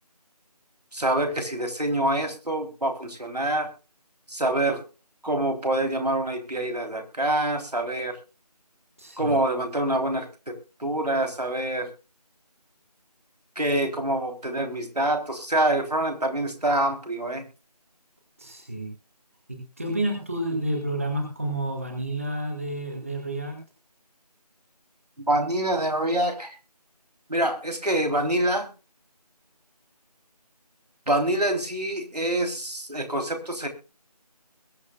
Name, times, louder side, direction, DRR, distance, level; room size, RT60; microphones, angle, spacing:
voice 1, 0.9-3.7 4.3-4.8 5.2-8.2 9.2-11.9 13.6-17.4 25.3-26.6 27.3-28.7 31.1-33.7, right 1 dB, 75° right, 4 dB, 3.6 m, -26 dB
voice 2, 9.0-9.3 18.4-18.9 19.5-23.6, right 1 dB, 20° right, 3 dB, 2.2 m, -30 dB
21.5 x 9.6 x 2.4 m, 0.34 s
figure-of-eight pair, 175°, 20 cm